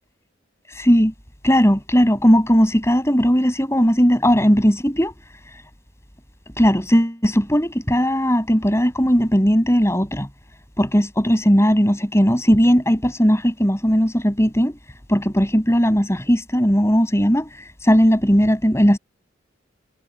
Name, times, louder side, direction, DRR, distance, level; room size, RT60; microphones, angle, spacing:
voice 1, 0.8-1.1 1.4-5.1 6.6-10.3 10.8-14.7 15.1-17.5 17.8-19.0, equal, 15° left, 7.2 m, -17 dB
head